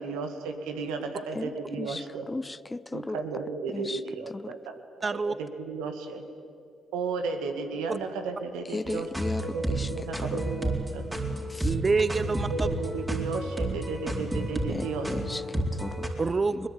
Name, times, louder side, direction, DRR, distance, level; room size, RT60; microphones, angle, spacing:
voice 1, 0.0-2.3 2.9-4.7 5.1-6.2 6.9-11.1 12.5-15.4, right 4 dB, 85° right, 6 dB, 2.0 m, -34 dB
voice 2, 1.3-3.2 3.7-4.0 4.3-4.6 8.7-10.4 11.5-11.7 14.7-16.1 16.5-16.7, left 2 dB, 20° left, 19 dB, 0.5 m, -36 dB
voice 3, 5.0-5.3 7.9-8.0 11.6-12.7 16.2-16.7, right 4 dB, 40° right, 15 dB, 0.7 m, -26 dB
sound 1, 8.9-16.1, right 1 dB, 15° right, 4.2 m, -31 dB
21.5 x 20.5 x 8.8 m, 2.5 s
hypercardioid pair, 50°, 0 cm